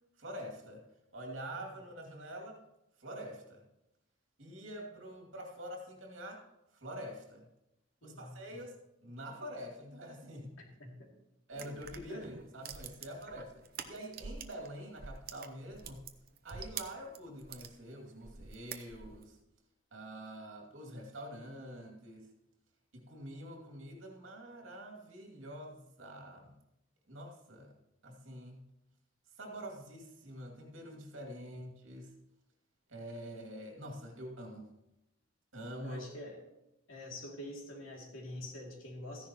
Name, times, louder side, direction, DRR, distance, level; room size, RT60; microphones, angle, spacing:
voice 1, 0.2-0.8 1.1-2.6 3.0-3.6 4.4-6.4 6.7-7.5 8.0-8.8 9.0-10.5 11.5-16.0 16.4-19.4 19.9-22.3 22.9-26.5 27.1-27.7 28.0-28.6 29.4-32.1 32.9-34.7 35.5-36.0, equal, 75° right, 1 dB, 2.5 m, -46 dB
voice 2, 8.0-8.4 10.6-11.1 11.5-11.7 12.0-12.2 31.5-31.6 35.8-36.4 36.9-39.3, left 1 dB, 85° left, 0 dB, 2.6 m, -46 dB
sound 1, 11.5-14.7 14.9-17.7 18.2-19.3, right 6 dB, 50° right, 0.8 m, -46 dB
14.5 x 10.5 x 3.0 m, 0.90 s
head